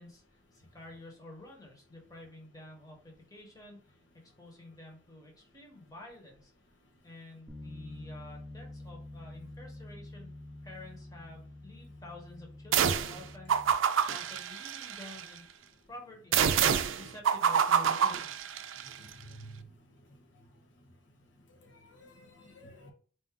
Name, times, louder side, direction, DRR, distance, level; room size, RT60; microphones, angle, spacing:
voice 1, 0.0-4.0 4.4-6.5 7.0-10.3 10.6-15.4 15.9-16.6 16.9-18.4, left 2 dB, 20° left, 1.1 m, -50 dB
Bass guitar, 7.5-13.7, left 1 dB, 10° right, 0.6 m, -47 dB
sound 1, 12.7-13.2 13.5-15.2 16.3-18.9, right 8 dB, 85° right, 0.4 m, -27 dB
voice 2, 19.0-19.6 21.6-22.9, equal, 70° left, 0.8 m, -51 dB
4.4 x 2.6 x 3.7 m
head